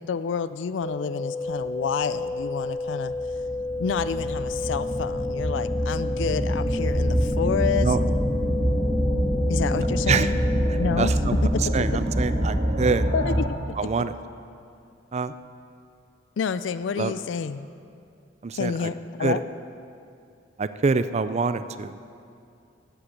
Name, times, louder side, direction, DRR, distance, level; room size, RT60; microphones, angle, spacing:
voice 1, 0.0-3.1 3.8-8.0 9.5-10.4 10.8-11.2 11.5-11.6 13.1-13.6 16.4-17.7 18.5-19.4, left 6 dB, 70° left, 14 dB, 0.4 m, -29 dB
sound 1, 0.8-10.8, left 2 dB, 55° left, 1.3 m, -31 dB
sound 2, 2.3-2.4 3.1-13.7, equal, 55° right, 2.5 m, -25 dB
voice 2, 10.7-13.1 13.8-14.1 15.1-15.3 17.0-17.1 18.4-18.9 19.2-19.4 20.6-22.0, right 4 dB, 35° right, 12 dB, 0.4 m, -26 dB
12.5 x 7.8 x 8.4 m, 2.5 s
head